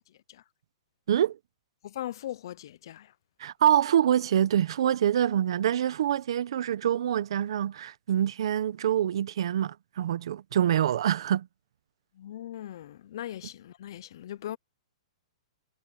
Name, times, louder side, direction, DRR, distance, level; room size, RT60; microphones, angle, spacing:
voice 1, 1.1-1.4 3.4-11.5, right 10 dB, 50° right, 0.8 m, -25 dB
voice 2, 1.8-3.1 12.2-14.6, left 12 dB, 45° left, 0.4 m, -39 dB
hypercardioid pair, 175°, 3 cm